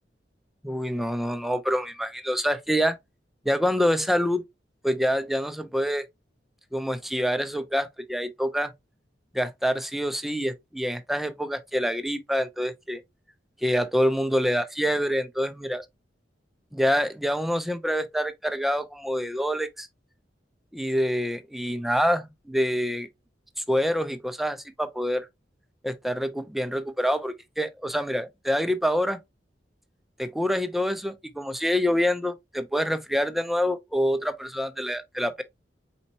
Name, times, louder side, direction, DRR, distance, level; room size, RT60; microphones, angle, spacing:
voice 1, 0.6-3.0 3.5-4.4 4.8-6.1 6.7-8.7 9.3-13.0 13.6-15.8 16.7-19.9 20.7-23.1 23.7-25.3 25.8-29.2 30.2-35.4, equal, ahead, 0.5 m, -26 dB
4.2 x 4.2 x 2.7 m
head